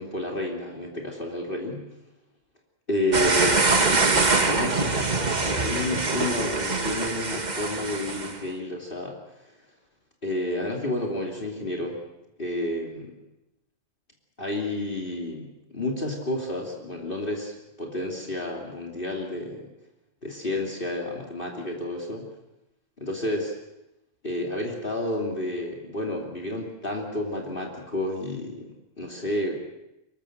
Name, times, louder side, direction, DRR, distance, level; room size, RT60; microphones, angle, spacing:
voice 1, 0.0-1.8 2.9-3.8 4.4-9.2 9.4-9.5 10.2-12.0 12.4-13.1 14.4-19.7 20.2-22.3 23.0-23.5 24.2-29.6, left 1 dB, 40° left, 0 dB, 2.9 m, -30 dB
sound 1, 3.1-8.4, right 3 dB, 35° right, 1.6 m, -24 dB
24.5 x 21.5 x 6.5 m, 0.91 s
omnidirectional pair, 1.4 m